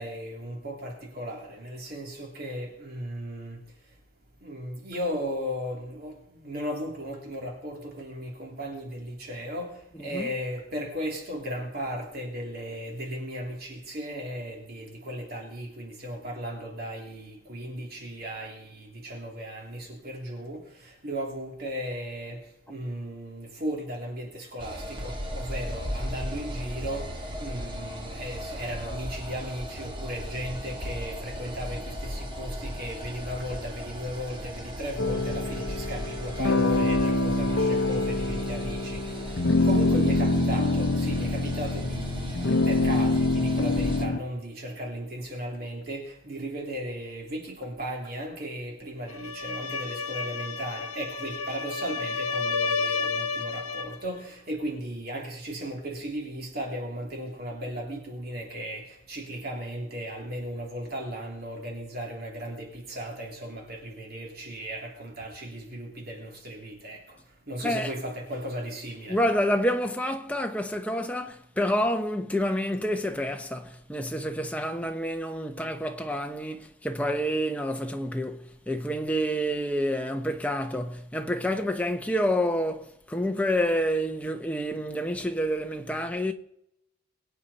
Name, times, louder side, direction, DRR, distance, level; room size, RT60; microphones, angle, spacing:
voice 1, 0.0-3.6 4.4-6.1 6.4-22.4 22.7-27.1 27.4-39.2 39.6-67.2 67.5-69.2, equal, 45° right, 3.0 m, -36 dB
voice 2, 10.0-10.3 67.6-67.9 69.1-86.3, equal, 5° left, 0.9 m, -28 dB
sound 1, 24.6-44.0, equal, 25° right, 1.9 m, -37 dB
sound 2, 35.0-44.2, left 2 dB, 60° left, 0.7 m, -25 dB
sound 3, 49.1-54.0, left 4 dB, 85° left, 1.3 m, -31 dB
23.0 x 8.5 x 4.2 m
head